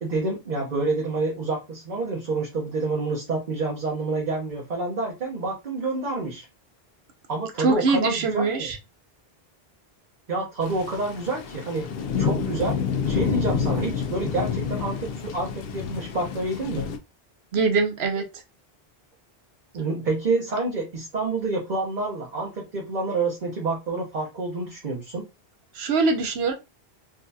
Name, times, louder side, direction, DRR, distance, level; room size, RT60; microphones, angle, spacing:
voice 1, 0.0-6.5 7.3-8.7 10.3-11.9 12.2-12.8 13.1-16.9 19.7-25.2, right 3 dB, 50° right, -2 dB, 1.0 m, -28 dB
voice 2, 7.6-8.8 17.5-18.4 25.7-26.5, right 4 dB, 90° right, 5 dB, 1.0 m, -23 dB
sound 1, 10.6-17.0, left 6 dB, 70° left, 0.7 m, -28 dB
3.8 x 2.3 x 2.7 m, 0.25 s
omnidirectional pair, 1.0 m